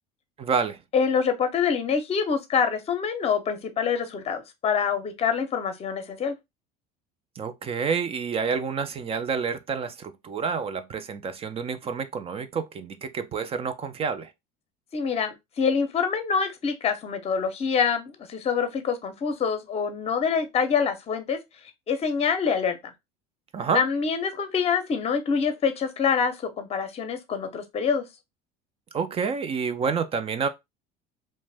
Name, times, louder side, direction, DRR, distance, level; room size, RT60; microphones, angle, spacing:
voice 1, 0.4-0.8 7.4-14.3 23.5-23.8 28.9-30.5, right 6 dB, 30° right, 0.4 m, -28 dB
voice 2, 0.9-6.3 14.9-21.4 21.9-22.8 23.7-28.0, left 6 dB, 30° left, 0.6 m, -25 dB
2.5 x 2.1 x 3.3 m
supercardioid pair, 110°, 19 cm